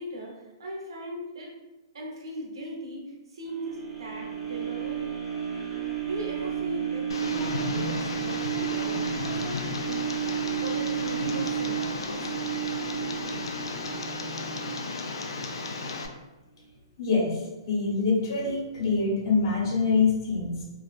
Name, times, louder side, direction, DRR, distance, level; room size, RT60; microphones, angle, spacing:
voice 1, 0.0-1.5 1.9-5.0 6.0-10.2 10.6-12.3, right 1 dB, 80° right, -2 dB, 0.9 m, -38 dB
sound 1, 3.5-15.6 16.1-16.2, right 9 dB, 15° right, 0.7 m, -32 dB
Tick, 7.1-16.1, left 3 dB, 85° left, 0.3 m, -34 dB
voice 2, 17.0-20.6, left 4 dB, 55° left, -3 dB, 0.9 m, -25 dB
2.3 x 2.2 x 2.4 m, 1.1 s
hypercardioid pair, 145°, 3 cm